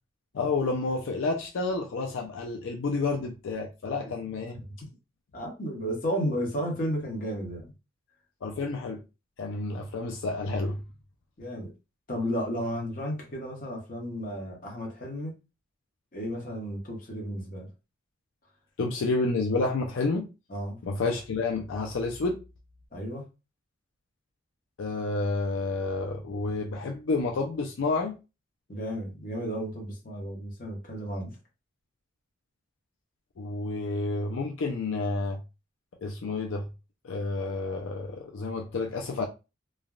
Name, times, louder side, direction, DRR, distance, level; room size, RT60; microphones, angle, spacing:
voice 1, 0.3-4.6 8.4-9.0 9.4-10.8 18.8-20.3 20.8-22.4 24.8-28.2 33.4-35.4 36.0-36.7 37.0-39.3, left 3 dB, 80° left, 0.4 m, -30 dB
voice 2, 5.3-7.7 11.4-11.7 12.1-15.3 16.1-17.7 20.5-20.8 22.9-23.2 28.7-31.3, equal, 45° left, 1.0 m, -33 dB
3.2 x 2.1 x 2.3 m
head